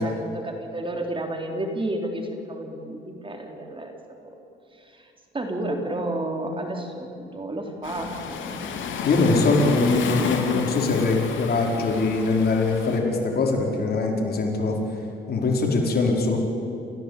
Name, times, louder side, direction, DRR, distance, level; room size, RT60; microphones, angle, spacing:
voice 1, 0.0-3.9 4.2-4.3 4.7-8.6 9.2-10.1, right 1 dB, 25° right, 3 dB, 3.6 m, -32 dB
Waves surf, 7.8-13.0, left 6 dB, 75° left, 3.2 m, -31 dB
voice 2, 9.0-14.8 15.3-16.4, left 3 dB, 50° left, 0 dB, 4.9 m, -22 dB
29.5 x 15.5 x 8.4 m, 2.7 s
cardioid pair, 90°, 20 cm